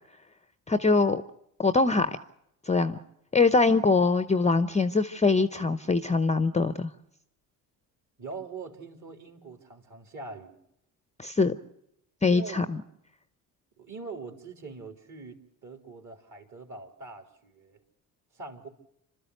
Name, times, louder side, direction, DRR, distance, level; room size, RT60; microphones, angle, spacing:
voice 1, 0.7-1.2 1.6-2.2 2.7-3.0 3.3-6.9 11.2-11.5 12.2-12.8, left 3 dB, 15° left, 12 dB, 0.8 m, -23 dB
voice 2, 8.2-10.6 12.3-12.7 13.8-17.8 18.3-18.7, right 4 dB, 40° right, 5 dB, 3.5 m, -43 dB
27.5 x 13.0 x 8.0 m, 0.78 s
hypercardioid pair, 60°, 45 cm